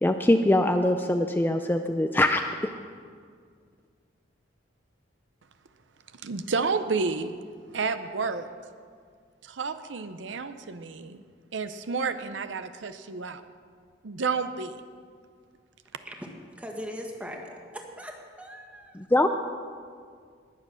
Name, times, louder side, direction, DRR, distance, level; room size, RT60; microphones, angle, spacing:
voice 1, 0.0-2.7 18.9-19.3, left 1 dB, 10° left, 6 dB, 0.4 m, -23 dB
voice 2, 6.2-7.3 7.7-8.5 9.4-11.2 11.5-13.4 14.0-14.8, right 4 dB, 70° right, 10 dB, 0.6 m, -30 dB
voice 3, 16.6-18.1 18.4-19.0, equal, 5° right, 1 dB, 1.6 m, -39 dB
19.5 x 7.6 x 6.3 m, 2.1 s
head